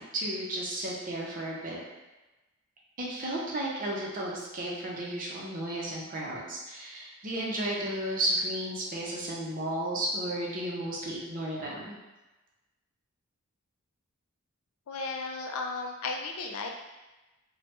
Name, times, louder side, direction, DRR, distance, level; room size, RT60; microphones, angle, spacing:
voice 1, 0.0-1.8 3.0-12.0, right 1 dB, 40° right, -3 dB, 0.6 m, -33 dB
voice 2, 14.9-16.7, left 3 dB, 80° left, 2 dB, 0.4 m, -34 dB
3.2 x 2.2 x 2.9 m, 1.1 s
head